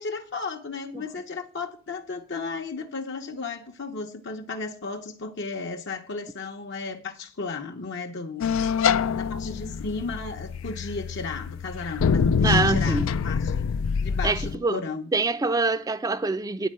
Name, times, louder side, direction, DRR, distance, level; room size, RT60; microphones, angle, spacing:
voice 1, 0.0-8.5 9.1-13.6 14.0-15.1, left 4 dB, 60° left, 0.8 m, -34 dB
sound 1, 8.4-14.6, left 6 dB, 80° left, 0.4 m, -25 dB
voice 2, 12.4-13.1 14.2-14.8 15.1-16.7, right 3 dB, 15° right, 0.4 m, -25 dB
10.0 x 4.4 x 7.4 m
head